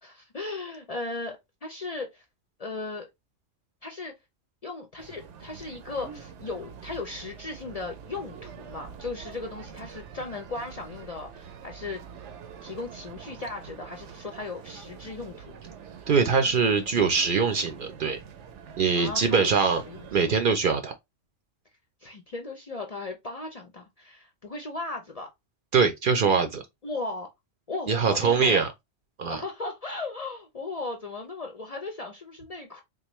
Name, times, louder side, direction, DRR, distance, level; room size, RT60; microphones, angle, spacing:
voice 1, 0.0-2.2 2.6-3.1 3.8-4.1 4.6-12.0 12.6-15.6 19.0-20.1 22.0-25.3 26.8-27.3 27.7-28.6 29.3-32.8, left 3 dB, 45° left, 0.5 m, -36 dB
sound 1, 5.0-20.2, right 7 dB, 80° right, 1.0 m, -45 dB
voice 2, 16.1-18.2 18.8-19.8 20.1-20.9 25.7-26.6 27.9-28.7 29.2-29.4, right 5 dB, 55° right, 0.7 m, -23 dB
3.8 x 2.6 x 3.0 m
omnidirectional pair, 1.2 m